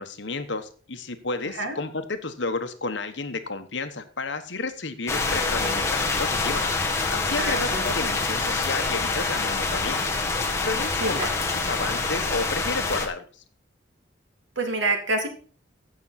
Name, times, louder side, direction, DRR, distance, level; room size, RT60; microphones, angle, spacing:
voice 1, 0.0-6.6 7.1-10.0 10.6-13.3, left 3 dB, 65° left, 8 dB, 1.2 m, -31 dB
sound 1, 5.1-13.1, left 3 dB, 15° left, 1.5 m, -26 dB
voice 2, 7.4-7.9 11.0-11.3 14.6-15.3, right 2 dB, 70° right, 5 dB, 2.3 m, -27 dB
15.5 x 6.0 x 4.2 m, 0.41 s
head